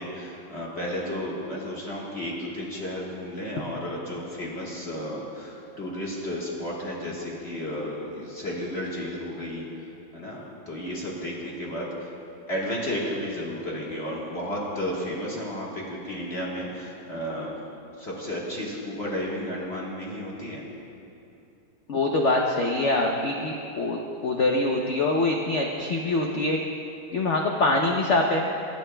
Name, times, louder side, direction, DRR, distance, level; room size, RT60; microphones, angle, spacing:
voice 1, 0.0-9.6 10.1-12.1 12.5-17.5 18.0-20.6, equal, 35° left, -5 dB, 1.5 m, -33 dB
voice 2, 21.9-26.6 27.1-28.4, left 2 dB, 85° left, 1 dB, 0.6 m, -24 dB
21.0 x 8.9 x 2.2 m, 2.8 s
omnidirectional pair, 2.1 m